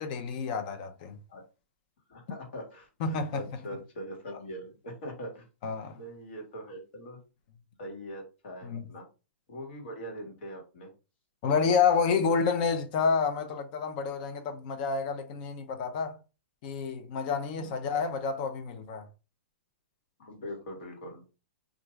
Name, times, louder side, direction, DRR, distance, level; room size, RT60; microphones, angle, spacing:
voice 1, 0.0-1.2 3.0-3.4 5.6-6.0 8.6-8.8 11.4-16.2 16.6-19.1, left 5 dB, 45° left, 0.6 m, -29 dB
voice 2, 2.1-5.4 5.9-7.2 7.8-9.0 9.5-10.9 17.5-17.7 20.2-21.2, equal, 60° left, 1.4 m, -42 dB
2.4 x 2.2 x 3.1 m
hypercardioid pair, 145°, 7 cm